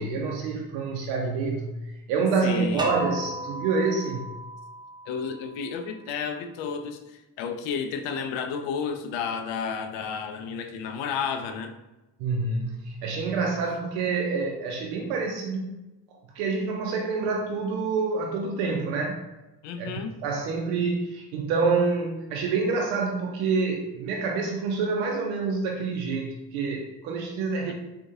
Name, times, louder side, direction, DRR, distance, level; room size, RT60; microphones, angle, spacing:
voice 1, 0.0-4.3 12.2-15.7 16.1-19.2 19.8-27.7, right 4 dB, 75° right, 1 dB, 0.6 m, -27 dB
voice 2, 2.4-2.9 5.1-11.7 19.6-20.1, left 6 dB, 65° left, 7 dB, 0.5 m, -32 dB
sound 1, 2.8-5.7, right 1 dB, 10° right, 0.3 m, -36 dB
3.6 x 2.5 x 2.7 m, 1.0 s
hypercardioid pair, 45°, 50 cm